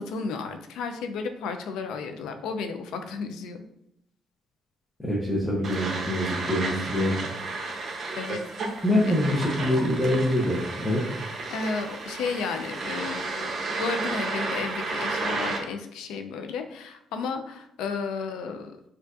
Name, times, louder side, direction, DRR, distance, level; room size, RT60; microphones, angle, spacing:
voice 1, 0.0-3.6 8.2-8.8 11.5-18.7, left 5 dB, 90° left, 7 dB, 0.4 m, -33 dB
voice 2, 5.0-7.1 8.8-11.0, left 1 dB, 10° left, -5 dB, 0.8 m, -25 dB
sound 1, 5.6-15.6, right 3 dB, 55° right, 0.7 m, -32 dB
4.6 x 2.5 x 2.5 m, 0.77 s
cardioid pair, 90°, 0 cm